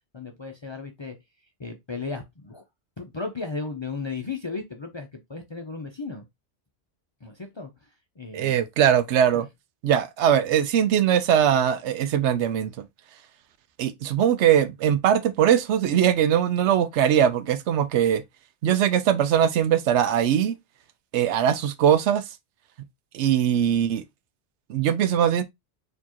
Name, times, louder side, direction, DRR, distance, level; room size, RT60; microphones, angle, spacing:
voice 1, 0.1-1.1 1.6-2.7 3.0-6.3 7.2-8.6 9.3-9.5, left 4 dB, 35° left, 0.4 m, -35 dB
voice 2, 8.3-9.5 9.8-12.7 13.8-18.2 18.6-20.5 21.1-22.2 23.1-24.0 24.7-25.4, right 9 dB, 80° right, 0.9 m, -21 dB
4.4 x 2.9 x 2.9 m
omnidirectional pair, 1.2 m